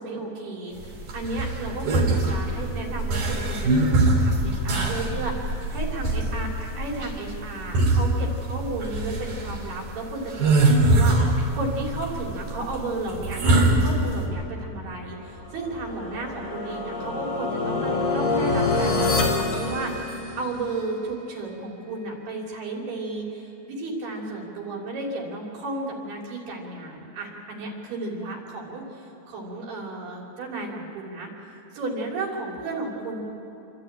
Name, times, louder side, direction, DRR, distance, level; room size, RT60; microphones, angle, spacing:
voice 1, 0.0-19.0 19.3-31.3 31.7-33.2, right 2 dB, 80° right, -2 dB, 5.1 m, -33 dB
sound 1, 0.8-14.2, right 2 dB, 60° right, 4.5 m, -23 dB
sound 2, 15.4-20.6, left 3 dB, 45° left, 3.4 m, -26 dB
28.5 x 12.5 x 8.9 m, 2.9 s
omnidirectional pair, 4.5 m